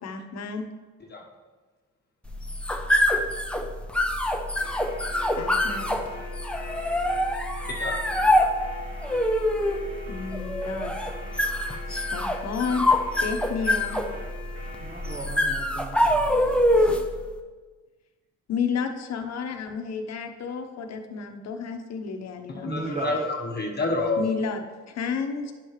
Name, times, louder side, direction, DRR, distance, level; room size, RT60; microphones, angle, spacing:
voice 1, 0.0-0.7 5.4-6.0 10.1-10.9 11.9-12.9 13.2-14.0 18.5-22.8 24.2-25.5, left 5 dB, 60° left, 6 dB, 1.0 m, -31 dB
sound 1, 2.3-17.2, left 1 dB, 5° left, 0.7 m, -25 dB
sound 2, 4.6-15.3, left 2 dB, 50° right, 2.5 m, -43 dB
voice 2, 7.7-8.0 22.5-24.2, left 2 dB, 35° left, 0 dB, 1.1 m, -28 dB
voice 3, 14.8-16.8 22.6-23.1, right 3 dB, 25° right, 0 dB, 0.9 m, -36 dB
10.5 x 6.5 x 3.1 m, 1.3 s
cardioid pair, 90°, 30 cm